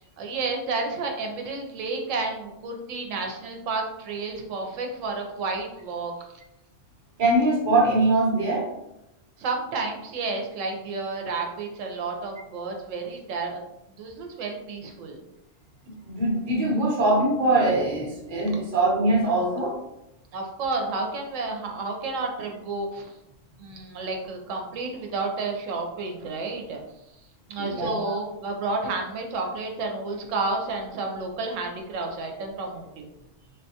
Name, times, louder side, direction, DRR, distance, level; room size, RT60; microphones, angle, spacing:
voice 1, 0.2-6.1 9.4-13.6 14.0-15.2 20.3-23.1 23.6-26.8 27.5-33.1, right 3 dB, 90° right, 2 dB, 1.0 m, -31 dB
voice 2, 7.2-8.7 16.0-19.7 27.6-28.1, right 2 dB, 45° right, -2 dB, 0.9 m, -22 dB
3.6 x 2.2 x 2.7 m, 0.87 s
omnidirectional pair, 1.3 m